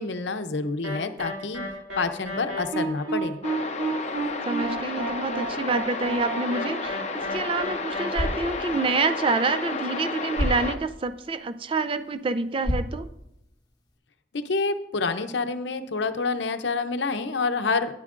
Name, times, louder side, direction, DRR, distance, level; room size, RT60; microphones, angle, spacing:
voice 1, 0.0-1.6 2.0-3.4 14.3-17.9, left 4 dB, 80° left, 9 dB, 0.7 m, -28 dB
sound 1, 0.8-8.3, right 2 dB, 90° right, 2.5 m, -31 dB
sound 2, 3.4-10.8, left 4 dB, 40° left, 0.6 m, -32 dB
voice 2, 4.4-13.1, right 3 dB, 30° right, 10 dB, 0.3 m, -27 dB
sound 3, 8.0-14.0, equal, 25° left, 1.2 m, -34 dB
12.0 x 9.7 x 2.5 m, 0.83 s
head